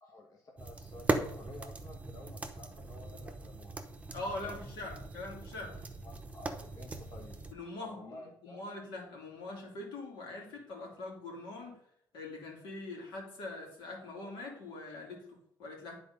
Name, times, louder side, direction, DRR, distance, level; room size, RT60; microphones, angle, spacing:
voice 1, 0.0-3.8 4.4-4.5 6.0-7.4 7.7-8.6, left 2 dB, 45° left, 0 dB, 1.2 m, -52 dB
sound 1, 0.6-7.5, right 3 dB, 15° right, 0.9 m, -39 dB
voice 2, 4.1-5.8 7.5-11.8 12.1-16.0, left 2 dB, 75° left, -1 dB, 2.9 m, -43 dB
9.3 x 4.2 x 5.3 m, 0.70 s
cardioid pair, 115°, 8 cm